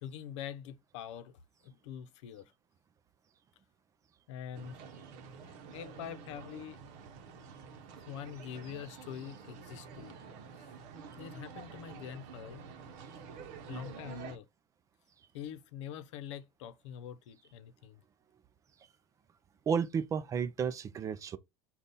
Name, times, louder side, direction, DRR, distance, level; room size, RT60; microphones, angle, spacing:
voice 1, 0.0-2.5 4.3-4.7 5.4-6.8 8.1-10.2 11.2-12.7 13.7-14.5 15.3-18.0, left 9 dB, 85° left, 0.7 m, -44 dB
sound 1, 4.5-14.4, right 6 dB, 55° right, 0.8 m, -49 dB
voice 2, 19.7-21.4, right 6 dB, 20° right, 0.4 m, -32 dB
5.2 x 2.4 x 4.1 m
supercardioid pair, 145°, 15 cm